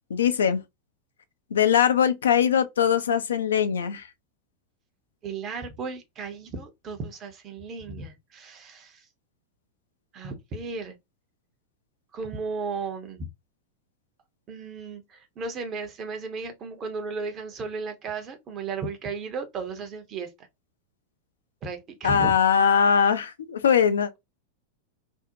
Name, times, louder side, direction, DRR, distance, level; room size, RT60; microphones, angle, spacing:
voice 1, 0.1-0.6 1.5-4.1 22.0-24.1, left 7 dB, 65° left, 0.3 m, -21 dB
voice 2, 5.2-9.1 10.1-11.0 12.1-13.3 14.5-20.5 21.6-22.4, right 4 dB, 30° right, 0.7 m, -35 dB
2.6 x 2.0 x 2.6 m
figure-of-eight pair, 90°, 0 cm